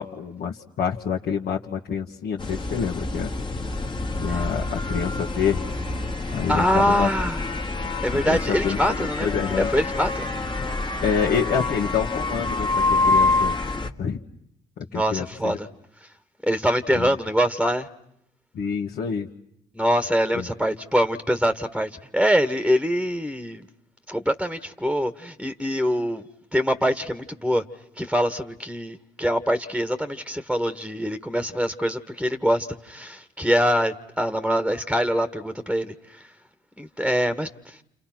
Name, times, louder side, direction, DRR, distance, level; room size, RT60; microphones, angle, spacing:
voice 1, 0.0-3.3 4.2-5.6 6.3-7.1 8.2-9.7 11.0-13.6 14.0-14.2 14.8-15.6 16.9-17.1 18.5-19.3 20.3-20.5, left 7 dB, 60° left, 1.9 m, -27 dB
sound 1, 2.4-13.9, left 3 dB, 25° left, 1.9 m, -26 dB
voice 2, 6.5-7.4 8.0-10.3 14.9-15.7 16.0-16.1 16.4-17.9 19.7-23.7 24.1-26.2 26.5-27.6 28.0-36.3 36.8-37.8, equal, ahead, 1.7 m, -24 dB
29.5 x 29.0 x 6.2 m
hypercardioid pair, 50°, 18 cm